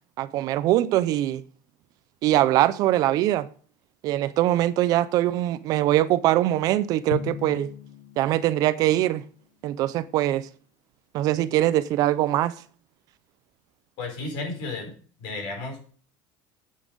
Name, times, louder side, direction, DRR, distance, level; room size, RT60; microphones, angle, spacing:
voice 1, 0.2-1.4 2.2-3.5 4.0-7.7 8.2-9.2 9.6-10.5 11.1-12.5, right 14 dB, 35° right, 0.5 m, -22 dB
Drum, 7.1-9.3, left 11 dB, 65° left, 0.9 m, -37 dB
voice 2, 14.0-15.9, left 3 dB, 50° left, 4.7 m, -33 dB
9.8 x 8.3 x 5.1 m
cardioid pair, 180°, 10 cm